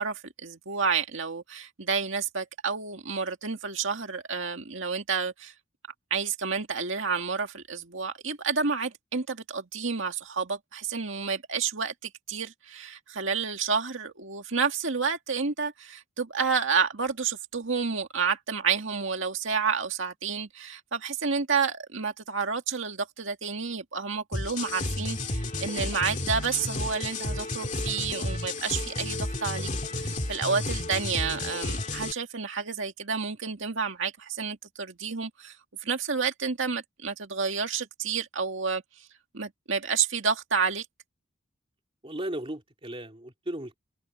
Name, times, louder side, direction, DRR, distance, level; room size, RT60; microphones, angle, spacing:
voice 1, 0.0-5.5 6.1-29.7 30.0-35.6 35.8-39.1 39.3-40.9, right 5 dB, 60° right, 2.1 m, -30 dB
sound 1, 24.3-32.1, left 2 dB, 35° left, 2.4 m, -32 dB
voice 2, 42.0-43.8, right 1 dB, 25° right, 2.8 m, -36 dB
open air
head